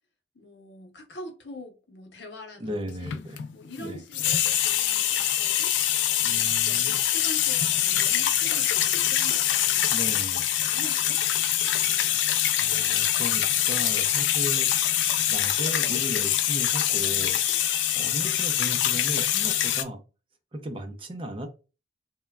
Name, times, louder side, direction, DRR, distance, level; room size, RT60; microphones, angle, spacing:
voice 1, 0.3-3.2 3.5-5.7 6.2-9.9 10.6-11.2 11.7-12.2 12.7-13.7, left 1 dB, 70° left, 0.8 m, -45 dB
voice 2, 2.6-3.4 3.8-4.0 6.2-7.0 9.9-10.4 12.6-14.7 15.3-17.4 18.0-20.0 20.5-21.5, equal, 30° right, 0.4 m, -36 dB
sound 1, 2.9-3.7 3.9-19.8, left 11 dB, 90° left, 0.3 m, -24 dB
3.1 x 2.1 x 2.3 m
head